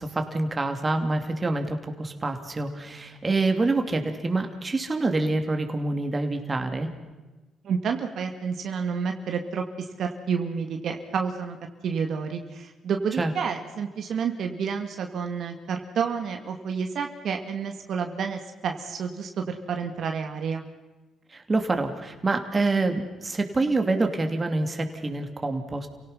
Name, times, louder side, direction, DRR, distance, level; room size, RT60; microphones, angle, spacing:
voice 1, 0.0-6.9 13.2-13.3 21.3-25.9, right 2 dB, 25° right, 5 dB, 2.9 m, -26 dB
voice 2, 7.6-11.6 11.8-20.6, right 6 dB, 65° right, 5 dB, 2.1 m, -30 dB
29.5 x 18.0 x 5.8 m, 1.2 s
cardioid pair, 90°, 0 cm